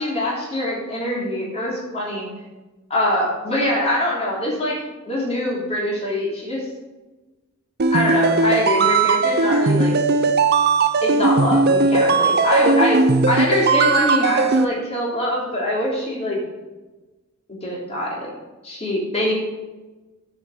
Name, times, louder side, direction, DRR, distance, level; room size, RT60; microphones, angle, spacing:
voice 1, 0.0-2.3 2.9-4.8 5.0-6.6 7.9-9.9 11.0-13.0 13.3-16.4 17.6-18.2 18.6-19.3, left 1 dB, 30° left, -4 dB, 3.3 m, -23 dB
sound 1, 7.8-14.6, right 3 dB, 50° right, 0.7 m, -18 dB
10.0 x 5.9 x 6.7 m, 1.2 s
head